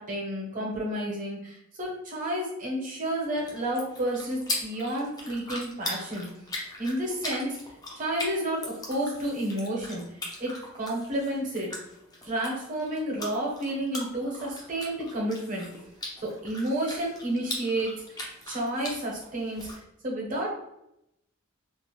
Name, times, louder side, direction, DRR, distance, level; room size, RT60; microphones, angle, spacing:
voice 1, 0.0-6.3 6.8-7.6 8.0-10.0 10.4-10.5 10.8-11.7 12.2-15.7 16.2-18.2 18.5-19.7 20.0-20.5, right 1 dB, 40° right, -3 dB, 0.8 m, -31 dB
sound 1, 3.2-19.8, left 1 dB, 20° left, 0.5 m, -40 dB
2.4 x 2.1 x 3.0 m, 0.82 s
head